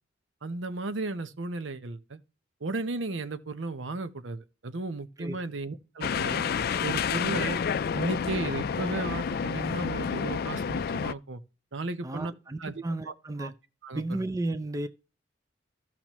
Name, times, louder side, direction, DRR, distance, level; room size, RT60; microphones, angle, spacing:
voice 1, 0.4-2.2 2.6-6.4 6.8-7.6 7.9-11.4 11.7-12.3 12.6-13.1 13.4-13.5 13.8-14.2, right 3 dB, 80° right, 0.9 m, -35 dB
sound 1, 6.0-11.1, left 6 dB, 55° left, 0.3 m, -29 dB
voice 2, 12.0-13.5 13.9-14.9, right 2 dB, 15° right, 0.4 m, -33 dB
15.0 x 6.0 x 3.0 m
head